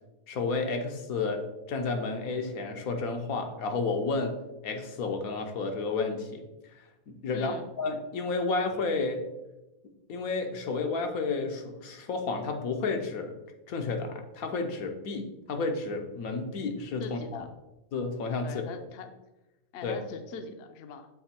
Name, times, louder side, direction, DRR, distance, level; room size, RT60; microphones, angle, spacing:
voice 1, 0.3-4.3 4.6-6.4 7.1-9.3 10.1-13.4 13.7-17.2 17.9-18.6 19.8-20.0, left 3 dB, 80° left, 4 dB, 1.3 m, -31 dB
voice 2, 7.3-7.7 17.0-17.5 18.4-19.1 19.7-21.1, left 4 dB, 60° left, 7 dB, 0.7 m, -41 dB
7.0 x 3.7 x 4.2 m, 1.0 s
omnidirectional pair, 1.5 m